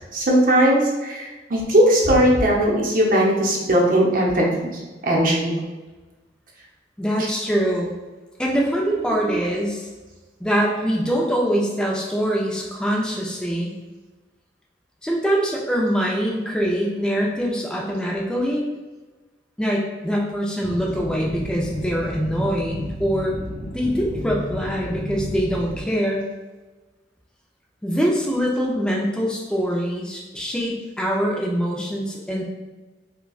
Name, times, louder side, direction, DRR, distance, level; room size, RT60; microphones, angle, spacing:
voice 1, 0.1-5.5 7.2-7.3 9.2-9.4, right 1 dB, 50° right, -2 dB, 0.7 m, -19 dB
voice 2, 7.0-7.9 8.4-9.9 10.4-13.7 15.0-18.6 19.6-23.3 23.7-26.3 27.8-32.4, equal, 5° left, -3 dB, 0.4 m, -23 dB
sound 1, 20.6-25.8, left 1 dB, 25° right, 0.9 m, -32 dB
5.1 x 2.2 x 2.3 m, 1.2 s
head